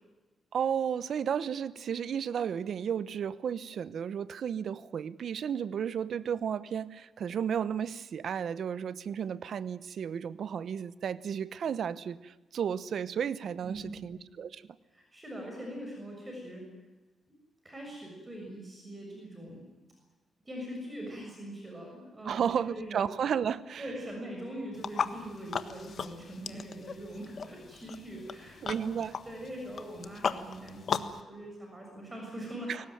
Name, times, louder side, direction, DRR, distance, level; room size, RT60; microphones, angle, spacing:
voice 1, 0.5-14.7 22.2-23.8 28.6-29.1 32.7-32.9, right 8 dB, 65° right, 17 dB, 0.9 m, -33 dB
voice 2, 13.6-14.1 14.9-16.6 17.3-17.4 17.6-19.7 20.5-23.0 23.8-29.0 29.2-32.9, right 1 dB, 20° right, 0 dB, 6.9 m, -42 dB
sound 1, 24.7-31.2, left 6 dB, 55° left, 1.3 m, -37 dB
22.5 x 19.0 x 9.3 m, 1.2 s
cardioid pair, 110°, 0 cm